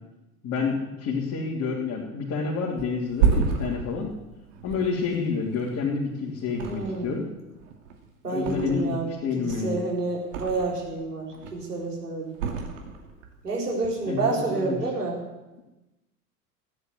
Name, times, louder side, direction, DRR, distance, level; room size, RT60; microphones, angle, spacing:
voice 1, 0.4-4.1 4.6-7.3 8.2-9.8 14.0-14.2 14.5-14.8, left 5 dB, 35° left, -4 dB, 3.1 m, -28 dB
Thump thud, 2.8-6.1 6.5-7.3 7.6-9.0 9.4-10.9 11.3-11.8 12.3-13.3 13.7-13.9, right 6 dB, 55° right, 2.5 m, -30 dB
voice 2, 6.6-7.2 8.2-9.1 9.4-12.3 13.4-15.2, right 3 dB, 80° right, -1 dB, 4.1 m, -29 dB
15.0 x 9.8 x 8.1 m, 1.0 s
figure-of-eight pair, 80°, 46 cm